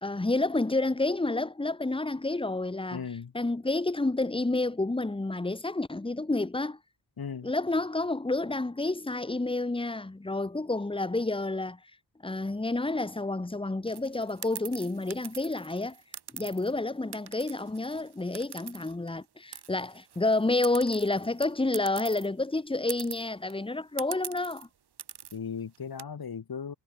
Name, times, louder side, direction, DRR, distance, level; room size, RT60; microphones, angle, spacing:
voice 1, 0.0-3.1 3.3-6.8 7.4-11.8 12.2-16.0 16.3-24.7, left 2 dB, 15° left, 1.4 m, -29 dB
voice 2, 2.9-3.3 7.2-7.5 25.3-26.7, left 6 dB, 60° left, 7.1 m, -37 dB
sound 1, 13.9-16.7 17.1-19.2 19.5-22.3 22.6-22.7 22.9-23.5 24.0-24.6 25.0-25.4 25.7-26.0, right 9 dB, 75° right, 2.5 m, -43 dB
cardioid pair, 65°, 40 cm